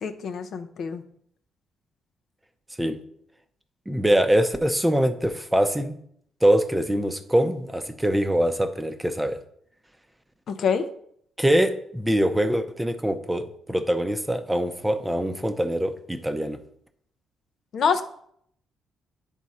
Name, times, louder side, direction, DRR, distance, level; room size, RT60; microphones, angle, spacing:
voice 1, 0.0-1.0 10.5-10.8 17.7-18.0, left 6 dB, 60° left, 7 dB, 0.6 m, -25 dB
voice 2, 3.9-6.0 6.4-9.4 11.4-16.6, right 1 dB, 5° right, 7 dB, 0.7 m, -23 dB
9.4 x 3.7 x 4.2 m, 0.67 s
cardioid pair, 90°, 0 cm